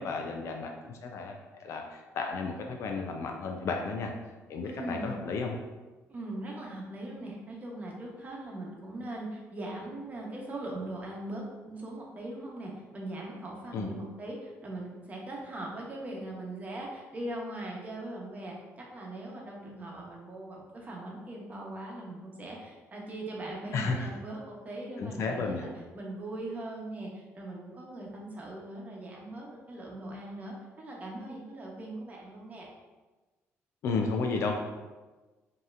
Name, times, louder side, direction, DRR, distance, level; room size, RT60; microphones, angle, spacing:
voice 1, 0.0-1.3 1.6-4.1 4.5-5.5 13.7-13.9 23.7-24.1 25.0-25.7 33.8-34.6, left 4 dB, 65° left, 2 dB, 0.4 m, -33 dB
voice 2, 4.6-5.1 6.1-25.7 25.9-32.7, right 1 dB, 30° right, -2 dB, 0.9 m, -40 dB
5.2 x 2.9 x 2.5 m, 1.2 s
cardioid pair, 135°, 5 cm